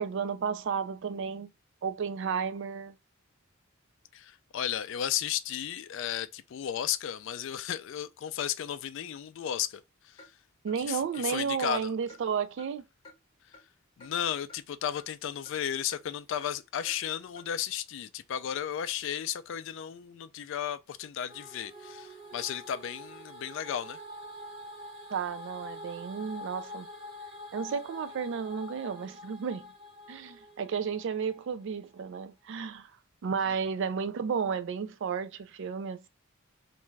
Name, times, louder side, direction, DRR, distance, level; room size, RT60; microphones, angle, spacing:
voice 1, 0.0-1.5 1.8-2.9 10.6-12.8 25.1-26.9 27.5-29.7 30.1-32.9 33.2-36.1, right 6 dB, 60° right, 0.3 m, -32 dB
voice 2, 4.1-9.8 10.9-11.9 14.0-24.0, left 9 dB, 60° left, 0.3 m, -34 dB
Clock, 10.2-10.3 10.7-10.8 11.1-11.3 11.6-11.7 12.1-12.2 12.6-12.7 13.0-13.2 13.5-13.7 14.0-14.1 14.5-14.6 15.0-15.1 15.5-15.6 15.9-16.0 16.4-16.5 16.9-17.0 17.4-17.5, left 2 dB, 25° left, 1.1 m, -52 dB
sound 1, 21.3-31.5, left 1 dB, 20° right, 1.0 m, -46 dB
2.5 x 2.2 x 3.1 m
head